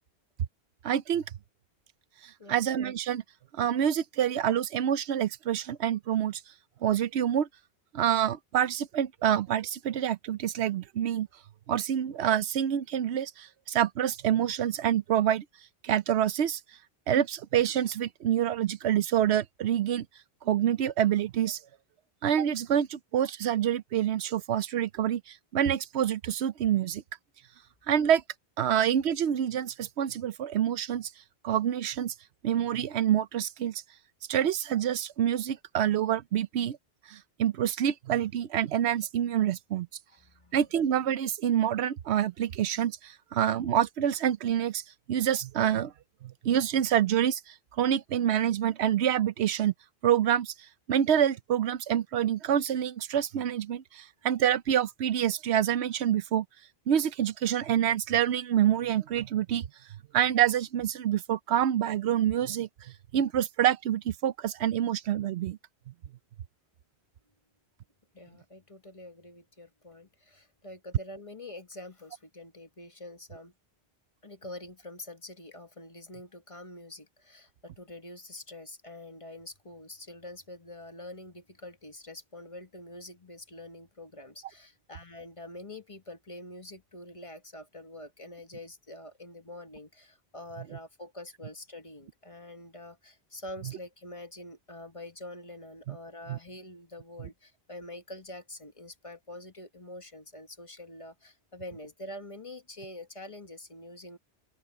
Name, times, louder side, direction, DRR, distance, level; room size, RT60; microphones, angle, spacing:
voice 1, 0.8-1.2 2.5-3.2 3.5-6.4 6.8-7.5 7.9-11.3 11.7-15.4 15.8-16.6 17.1-20.1 20.4-21.6 22.2-27.0 27.9-28.2 28.6-31.1 31.4-32.1 32.4-33.8 34.3-36.8 37.1-39.9 40.5-44.8 45.1-45.9 46.2-49.7 50.0-50.5 50.9-56.4 56.9-59.6 60.1-65.6 90.6-90.7 93.6-93.8 95.9-96.0 96.3-96.4, right 10 dB, 90° right, 0.9 m, -27 dB
voice 2, 40.2-40.6 68.1-73.5 74.2-104.2, left 1 dB, 30° left, 1.6 m, -45 dB
open air
omnidirectional pair, 1.1 m